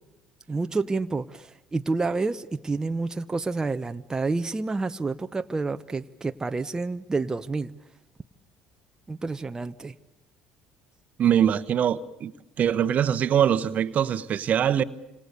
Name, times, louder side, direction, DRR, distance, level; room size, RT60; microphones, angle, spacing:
voice 1, 0.5-7.7 9.1-9.9, right 3 dB, 20° right, 1.0 m, -29 dB
voice 2, 11.2-12.3 12.6-14.8, right 9 dB, 50° right, 1.2 m, -23 dB
28.0 x 26.5 x 6.8 m
hypercardioid pair, 70°, 3 cm